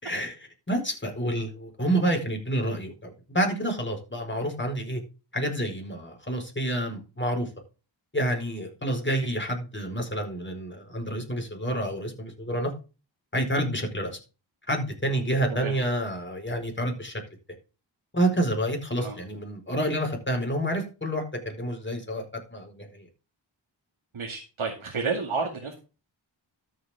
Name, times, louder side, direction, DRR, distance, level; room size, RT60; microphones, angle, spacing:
voice 1, 0.0-5.0 5.3-7.5 8.1-12.7 13.3-14.2 14.7-17.2 18.1-22.2 22.5-23.0, right 1 dB, 25° left, 4.7 m, -28 dB
voice 2, 24.1-25.7, right 4 dB, 85° right, 2.4 m, -30 dB
13.0 x 7.7 x 3.6 m
cardioid pair, 50°, 47 cm